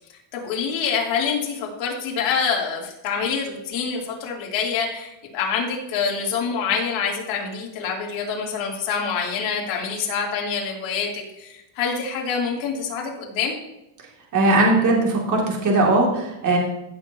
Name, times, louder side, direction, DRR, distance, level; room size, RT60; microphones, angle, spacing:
voice 1, 0.3-13.5, left 6 dB, 70° left, -2 dB, 3.2 m, -26 dB
voice 2, 14.3-16.6, right 2 dB, 40° right, -1 dB, 2.6 m, -19 dB
15.5 x 7.2 x 2.9 m, 0.89 s
cardioid pair, 160°, 47 cm